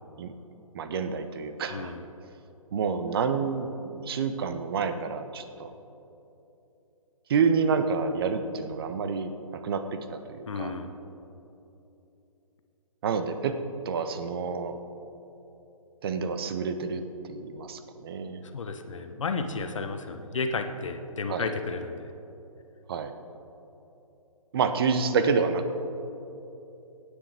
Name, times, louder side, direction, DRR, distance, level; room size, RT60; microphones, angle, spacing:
voice 1, 0.7-1.9 2.7-5.7 7.3-10.7 13.0-13.6 13.8-14.8 16.0-17.0 17.3-18.4 21.3-21.5 22.9-23.1 24.5-25.9, right 5 dB, 40° right, 9 dB, 0.9 m, -28 dB
voice 2, 1.7-2.0 10.5-10.9 18.5-22.1, left 4 dB, 60° left, 7 dB, 1.0 m, -32 dB
18.5 x 9.9 x 3.5 m, 3.0 s
figure-of-eight pair, 135°, 19 cm